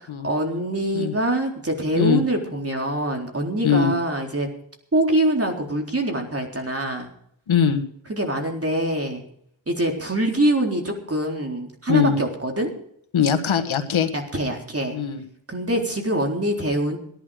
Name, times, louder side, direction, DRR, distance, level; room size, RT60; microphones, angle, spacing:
voice 1, 0.2-4.5 4.9-7.1 8.1-9.2 9.7-12.7 14.1-15.0 15.5-17.0, right 1 dB, 30° right, 2 dB, 3.9 m, -24 dB
voice 2, 7.5-7.8 11.9-12.2 13.1-14.1 14.9-15.2, left 7 dB, 80° left, 8 dB, 1.8 m, -20 dB
17.5 x 11.5 x 5.1 m, 0.69 s
cardioid pair, 65°, 47 cm